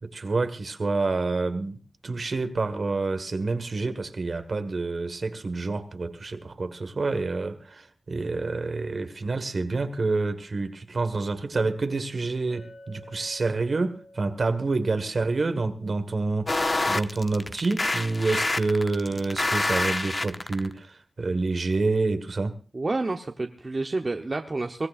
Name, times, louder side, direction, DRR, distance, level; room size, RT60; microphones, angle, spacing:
voice 1, 0.0-22.5, right 3 dB, 60° right, 1.6 m, -28 dB
Chink clink, 12.5-16.7, left 1 dB, 90° left, 2.7 m, -51 dB
sound 1, 16.5-20.7, left 2 dB, 35° left, 0.8 m, -26 dB
voice 2, 22.7-24.9, right 2 dB, 45° right, 1.0 m, -29 dB
22.5 x 16.5 x 2.5 m
wide cardioid pair, 70°, 0 cm